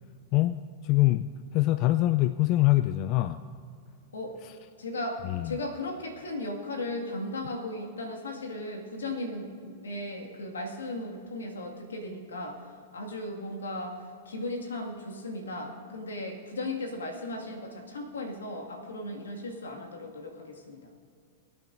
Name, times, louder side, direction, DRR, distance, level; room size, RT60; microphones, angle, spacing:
voice 1, 0.8-3.4 5.2-5.6, left 16 dB, 45° left, 13 dB, 0.3 m, -24 dB
voice 2, 4.8-12.6 12.9-20.8, left 1 dB, 85° left, 2 dB, 1.9 m, -36 dB
22.0 x 9.0 x 2.6 m, 2.2 s
hypercardioid pair, 110°, 0 cm